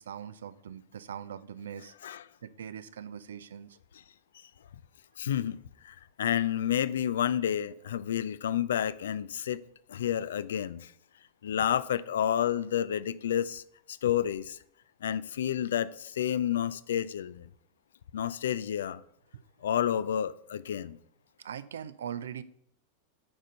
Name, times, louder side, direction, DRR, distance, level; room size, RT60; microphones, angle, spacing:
voice 1, 0.0-1.9 2.4-3.8 19.3-19.4 21.4-22.4, right 8 dB, 65° right, 0.5 m, -41 dB
voice 2, 5.2-5.6 5.8-9.6 9.9-10.9 11.4-13.6 13.9-14.6 15.0-17.5 18.1-19.0 19.6-21.0, left 10 dB, 60° left, 0.4 m, -30 dB
8.8 x 5.0 x 5.5 m
figure-of-eight pair, 90°, 0 cm